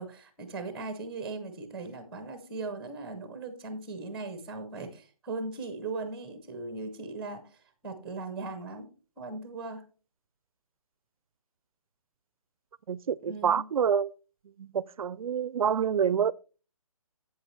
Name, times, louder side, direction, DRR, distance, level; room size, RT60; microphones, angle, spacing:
voice 1, 0.0-8.9 9.2-9.9 13.3-13.7, right 3 dB, 5° right, 0.6 m, -38 dB
voice 2, 12.9-14.1 14.6-16.3, right 7 dB, 75° right, 0.4 m, -27 dB
8.0 x 7.9 x 3.2 m
hypercardioid pair, 170°, 18 cm